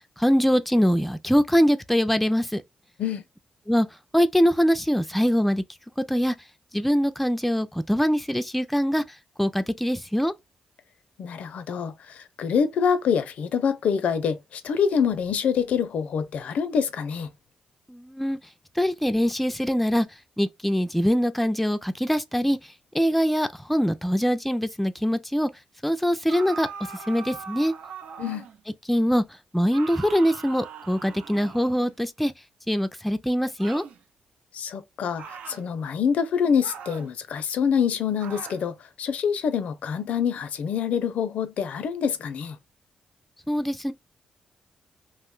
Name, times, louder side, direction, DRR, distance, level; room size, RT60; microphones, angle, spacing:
voice 1, 0.2-2.6 3.7-3.9 4.1-5.6 6.1-6.3 6.7-9.0 9.4-10.3 17.9-18.4 18.8-20.1 20.4-22.6 22.9-25.5 25.8-26.7 27.1-27.7 28.9-29.2 29.5-32.3 32.7-33.8 43.5-43.9, equal, 5° left, 0.4 m, -23 dB
voice 2, 11.2-17.3 28.2-28.5 34.5-42.6, left 7 dB, 75° left, 0.4 m, -26 dB
sound 1, 26.3-28.6 29.7-32.0 33.6-34.0 35.2-35.6 36.6-37.1 38.2-38.7, right 6 dB, 85° right, 0.4 m, -40 dB
2.5 x 2.1 x 3.7 m
cardioid pair, 80°, 2 cm